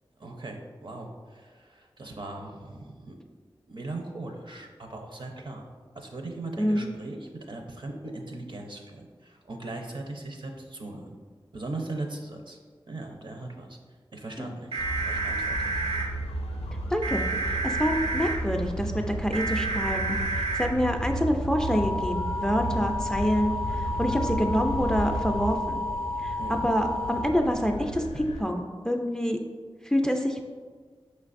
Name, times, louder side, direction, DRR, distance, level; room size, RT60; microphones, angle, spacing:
voice 1, 0.2-3.2 3.7-5.7 5.9-11.2 11.5-12.6 12.9-13.8 14.1-15.9 26.4-26.6, right 2 dB, 55° right, 2 dB, 0.6 m, -39 dB
sound 1, 14.7-16.0 17.0-18.3 19.3-20.6 21.6-27.2, right 1 dB, 80° right, 0.9 m, -31 dB
sound 2, 14.8-28.4, equal, 85° left, 0.4 m, -33 dB
voice 2, 16.9-25.8 26.2-26.4 26.6-29.4 29.8-30.4, equal, 5° left, 4 dB, 0.3 m, -27 dB
5.1 x 3.2 x 2.5 m, 1.5 s
cardioid pair, 40°, 10 cm